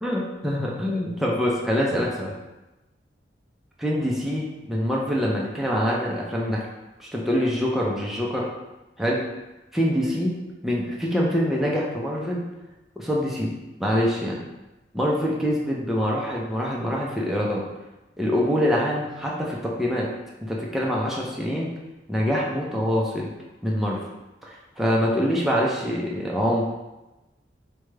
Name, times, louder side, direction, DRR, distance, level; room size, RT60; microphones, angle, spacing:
voice 1, 0.0-2.3 3.8-6.6 7.0-8.5 9.0-9.2 9.7-10.4 10.6-12.4 13.0-13.5 13.8-14.4 14.9-17.7 18.2-20.1 20.4-21.7 22.1-23.3 23.6-24.0 24.4-26.7, equal, ahead, -4 dB, 0.4 m, -25 dB
4.8 x 2.2 x 3.1 m, 1.0 s
head